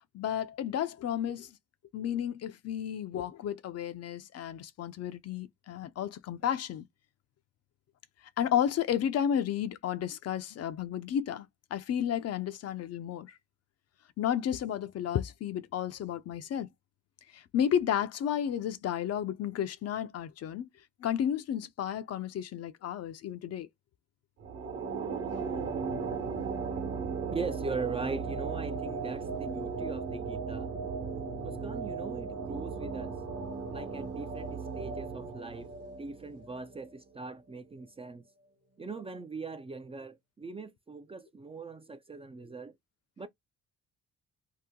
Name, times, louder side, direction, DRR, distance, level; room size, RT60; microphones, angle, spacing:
voice 1, 0.1-1.6 1.9-6.8 8.4-13.3 14.2-16.7 17.3-20.7 21.0-23.7 31.2-31.3, left 9 dB, 55° left, 0.5 m, -32 dB
sound 1, 24.4-37.0, right 5 dB, 50° right, 1.1 m, -36 dB
voice 2, 27.3-30.7 31.4-33.1 33.7-35.7 36.0-38.2 38.8-42.7 43.2-43.3, right 4 dB, 20° right, 0.4 m, -40 dB
2.9 x 2.1 x 3.6 m
cardioid pair, 90°, 30 cm